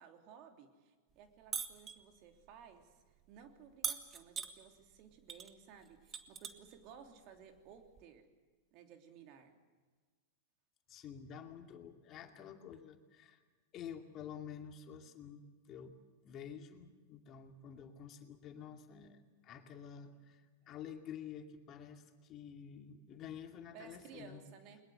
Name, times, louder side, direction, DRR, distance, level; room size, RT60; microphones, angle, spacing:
voice 1, 0.0-2.9 3.3-8.3 8.7-9.5 23.7-24.8, right 7 dB, 50° right, 5 dB, 3.2 m, -57 dB
sound 1, 1.5-2.0 3.8-4.5 5.3-5.5 5.8-6.8 8.0-8.1, right 7 dB, 30° right, 1.6 m, -40 dB
voice 2, 10.9-13.4 13.7-16.0 16.2-24.4, left 8 dB, 40° left, 5 dB, 2.4 m, -50 dB
22.0 x 21.0 x 7.9 m, 1.4 s
hypercardioid pair, 100°, 0 cm